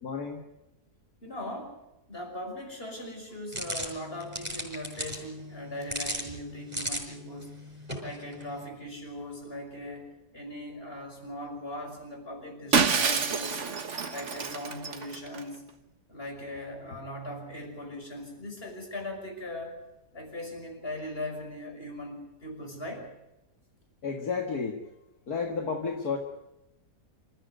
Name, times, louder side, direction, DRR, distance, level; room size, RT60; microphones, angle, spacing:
voice 1, 0.0-0.4 24.0-24.8 25.3-26.2, left 5 dB, 70° left, 3 dB, 2.4 m, -31 dB
voice 2, 1.2-1.8 2.1-7.6 8.0-13.6 14.1-15.6 16.1-19.7 20.1-23.1, left 1 dB, 35° left, 3 dB, 6.0 m, -39 dB
sound 1, 3.5-8.7, equal, 25° right, 6.3 m, -38 dB
Shatter, 12.7-15.4, right 5 dB, 50° right, 1.7 m, -27 dB
27.0 x 15.0 x 8.1 m, 0.94 s
omnidirectional pair, 1.7 m